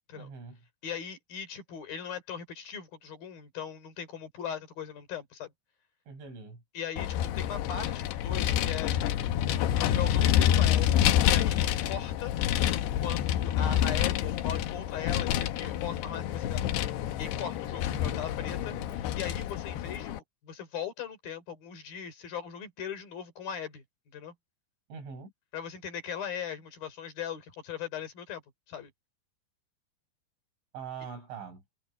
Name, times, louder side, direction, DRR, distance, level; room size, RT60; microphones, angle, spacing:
voice 1, 0.1-0.6 6.1-6.6 17.9-19.0 24.9-25.3 30.7-31.6, right 5 dB, 85° right, 9.8 m, -43 dB
voice 2, 0.8-5.5 6.7-9.3 9.8-12.3 13.0-16.7 17.2-23.8 24.1-24.3 25.5-28.4 28.7-28.9, left 8 dB, 50° left, 5.8 m, -39 dB
Vehicle, 7.0-20.2, left 11 dB, 75° left, 2.9 m, -28 dB
omnidirectional pair, 5.3 m